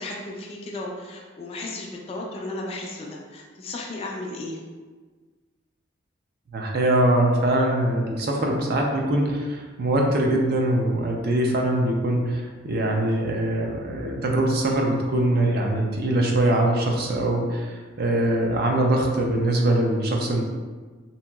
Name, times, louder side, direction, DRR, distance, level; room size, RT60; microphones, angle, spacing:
voice 1, 0.0-4.6, left 2 dB, 30° left, -1 dB, 0.3 m, -34 dB
voice 2, 6.5-20.4, right 1 dB, 50° right, 0 dB, 0.4 m, -22 dB
2.8 x 2.8 x 2.3 m, 1.4 s
head